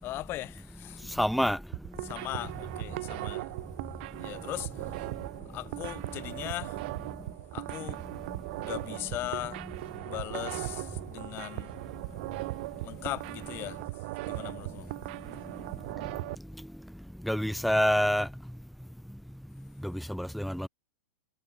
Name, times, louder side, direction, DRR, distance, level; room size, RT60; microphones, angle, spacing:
voice 1, 0.0-1.1 2.0-3.5 4.2-5.1 5.5-6.8 7.5-8.0 8.6-9.6 10.0-11.7 12.8-13.8 14.2-14.9, left 16 dB, 35° left, 5.0 m, -39 dB
voice 2, 1.0-1.6 8.3-8.4 16.6-16.7 17.2-18.3 19.8-20.7, equal, ahead, 0.7 m, -27 dB
sound 1, 1.6-16.4, right 22 dB, 55° right, 2.1 m, -38 dB
hypercardioid pair, 120°, 6 cm